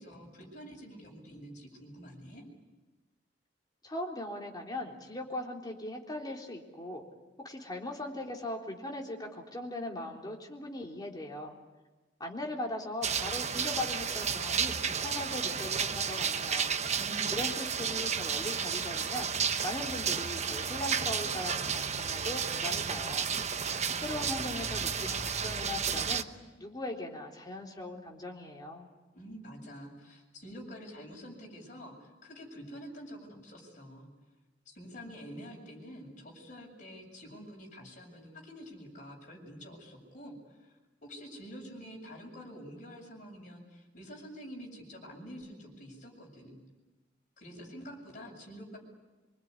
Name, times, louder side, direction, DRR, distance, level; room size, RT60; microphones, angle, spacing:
voice 1, 0.0-2.4 17.0-17.4 29.1-34.1 34.7-46.6 47.4-48.8, equal, 45° left, 0 dB, 7.8 m, -47 dB
voice 2, 3.8-7.0 7.4-11.6 12.2-16.8 17.3-19.3 19.6-23.3 24.0-26.3 26.6-28.9, left 1 dB, 20° left, 0 dB, 3.7 m, -39 dB
sound 1, 13.0-26.2, right 6 dB, 40° right, 1.1 m, -32 dB
25.5 x 24.0 x 9.8 m, 1.2 s
head